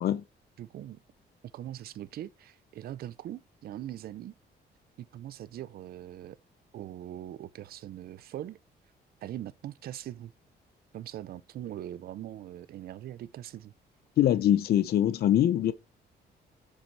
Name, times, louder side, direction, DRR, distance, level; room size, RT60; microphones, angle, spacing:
voice 1, 0.6-1.0 1.5-4.3 5.0-6.4 6.7-8.6 9.2-10.3 10.9-13.7, right 12 dB, 60° right, 0.5 m, -41 dB
voice 2, 14.2-15.7, left 11 dB, 60° left, 0.6 m, -23 dB
7.4 x 6.7 x 4.6 m
cardioid pair, 165°, 18 cm